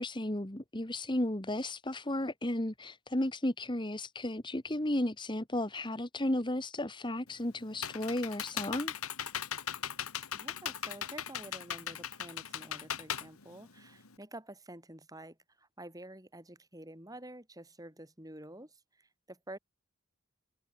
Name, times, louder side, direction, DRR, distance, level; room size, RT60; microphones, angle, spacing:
voice 1, 0.0-8.9, left 1 dB, 20° left, 1.7 m, -34 dB
Computer keyboard, 7.3-14.1, left 9 dB, 85° left, 2.7 m, -39 dB
voice 2, 10.3-19.6, right 1 dB, 15° right, 6.0 m, -49 dB
head